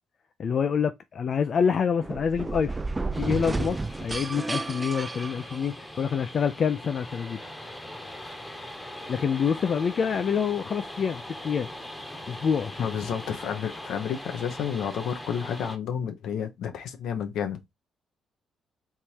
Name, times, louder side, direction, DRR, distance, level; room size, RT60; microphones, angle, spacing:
voice 1, 0.4-2.8 3.2-7.4 9.1-11.7 12.3-12.9, left 6 dB, 50° left, 0.4 m, -26 dB
sound 1, 2.0-6.0, right 3 dB, 20° right, 0.3 m, -32 dB
sound 2, 3.1-15.8, left 1 dB, 10° left, 1.0 m, -41 dB
voice 2, 12.8-17.6, left 8 dB, 80° left, 0.9 m, -31 dB
3.6 x 2.8 x 4.6 m
cardioid pair, 90°, 0 cm